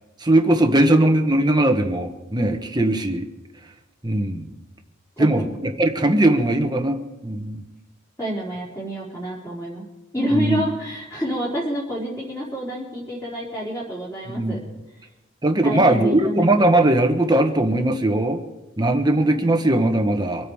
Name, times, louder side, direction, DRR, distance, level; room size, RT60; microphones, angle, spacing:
voice 1, 0.2-3.3 4.0-4.5 5.2-7.0 7.2-7.6 10.3-10.6 14.3-14.6 15.4-18.4 18.8-20.5, right 1 dB, 20° right, 5 dB, 1.3 m, -19 dB
voice 2, 5.2-5.5 8.2-9.8 10.1-14.6 15.6-16.6, equal, 15° left, -7 dB, 4.2 m, -28 dB
25.5 x 8.9 x 4.9 m, 1.0 s
head